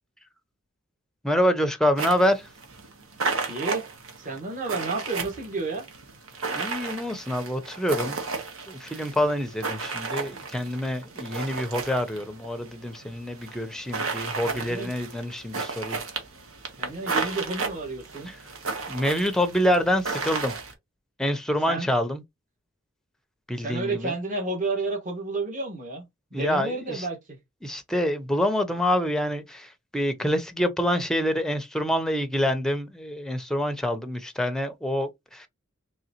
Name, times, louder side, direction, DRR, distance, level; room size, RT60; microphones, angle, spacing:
voice 1, 1.2-2.5 6.5-8.2 8.7-16.0 18.3-18.4 18.9-20.5 21.2-22.2 23.5-24.1 26.3-27.1 27.6-35.5, equal, 5° left, 0.5 m, -26 dB
sound 1, 2.0-20.7, right 4 dB, 80° right, 1.1 m, -33 dB
voice 2, 3.5-3.8 4.2-5.8 14.4-14.9 16.8-18.3 21.7-21.9 23.6-27.2, right 3 dB, 40° right, 1.3 m, -31 dB
3.8 x 3.2 x 2.9 m
head